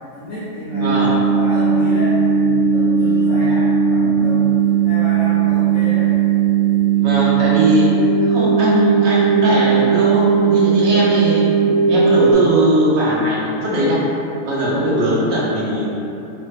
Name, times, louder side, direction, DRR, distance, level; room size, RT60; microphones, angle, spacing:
voice 1, 0.2-1.0 1.3-6.1, equal, 65° left, -10 dB, 0.8 m, -29 dB
sound 1, 0.7-12.3, right 6 dB, 80° right, 1.1 m, -17 dB
voice 2, 0.8-1.2 7.0-7.9 8.2-11.5 11.9-14.0 14.4-15.9, equal, 60° right, -6 dB, 0.8 m, -19 dB
3.1 x 2.1 x 3.2 m, 2.9 s
omnidirectional pair, 1.5 m